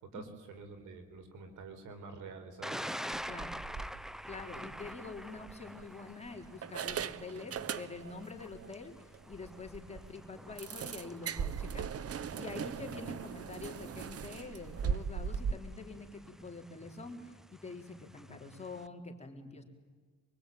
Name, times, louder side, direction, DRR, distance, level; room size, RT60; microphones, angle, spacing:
voice 1, 0.0-2.8, right 4 dB, 80° right, 7 dB, 4.6 m, -48 dB
Thunder, 2.6-18.9, equal, ahead, 0.8 m, -48 dB
sound 1, 3.1-11.6 11.9-12.1 12.5-13.3 13.7-14.0 14.3-14.4 14.6-15.0 15.6-16.1, right 3 dB, 35° right, 1.9 m, -54 dB
voice 2, 3.3-3.6 4.3-11.9 12.4-19.6, left 4 dB, 20° left, 2 dB, 4.1 m, -46 dB
sound 2, 4.6-4.8 5.5-6.1 6.6-8.3 8.6-8.7 9.1-9.2 9.6-9.7 10.6-15.5, right 7 dB, 50° right, 1.0 m, -38 dB
24.5 x 23.0 x 9.4 m, 1.5 s
cardioid pair, 90°, 30 cm